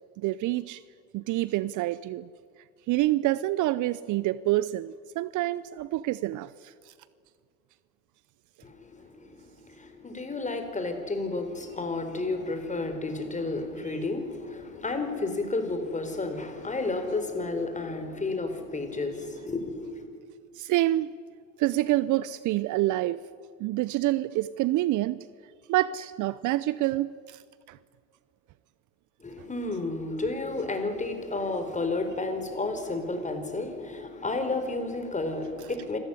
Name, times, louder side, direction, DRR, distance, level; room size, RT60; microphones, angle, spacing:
voice 1, 0.2-0.8 1.1-2.3 2.9-6.5 20.6-21.1 21.6-23.2 23.6-25.2 25.7-27.4 27.7-27.8, right 16 dB, 50° right, 0.7 m, -27 dB
voice 2, 8.6-9.3 9.6-20.1 29.2-36.0, left 3 dB, 20° left, 4.4 m, -31 dB
27.0 x 14.5 x 10.0 m
hypercardioid pair, 75°, 40 cm